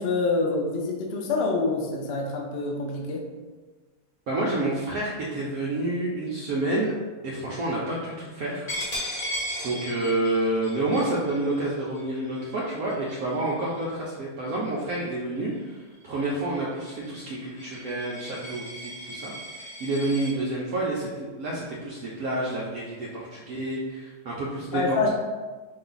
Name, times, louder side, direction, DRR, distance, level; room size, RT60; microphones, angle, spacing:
voice 1, 0.0-3.2 24.7-25.1, left 3 dB, 75° left, 0 dB, 0.5 m, -26 dB
voice 2, 4.3-7.0 7.2-8.7 9.6-19.3 19.6-25.1, right 2 dB, 65° right, -5 dB, 1.0 m, -29 dB
Coin (dropping), 8.7-14.1 14.5-14.8 15.2-20.3, equal, 40° left, 1.1 m, -37 dB
5.5 x 2.3 x 3.9 m, 1.3 s
omnidirectional pair, 1.9 m